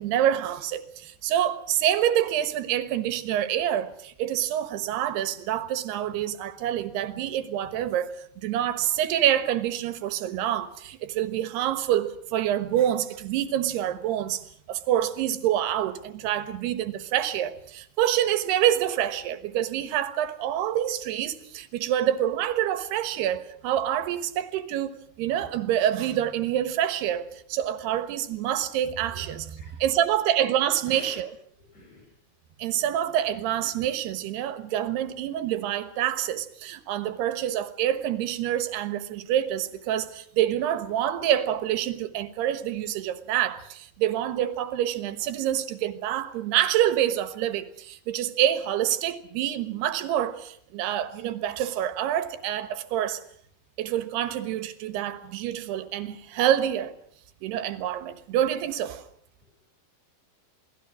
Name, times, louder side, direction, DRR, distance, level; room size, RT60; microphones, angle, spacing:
voice 1, 0.0-8.1 8.4-29.5 29.8-31.3 32.6-53.2 53.8-56.9 57.4-59.0, right 11 dB, 80° right, 3.3 m, -27 dB
voice 2, 29.2-30.2 30.8-31.3 31.6-32.1 59.4-59.5, left 2 dB, 45° left, 8.4 m, -48 dB
28.5 x 19.0 x 6.3 m
omnidirectional pair, 4.7 m